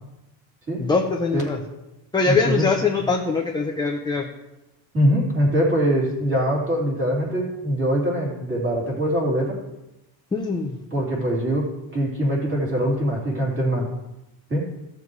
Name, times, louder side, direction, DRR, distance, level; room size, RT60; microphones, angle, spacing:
voice 1, 0.8-1.6 2.1-4.3 10.3-10.8, left 4 dB, 10° left, 1 dB, 0.5 m, -22 dB
voice 2, 2.2-2.7 4.9-9.6 10.9-13.9 14.5-14.7, equal, 25° right, -4 dB, 3.4 m, -23 dB
15.5 x 7.1 x 3.2 m, 0.96 s
cardioid pair, 155°, 48 cm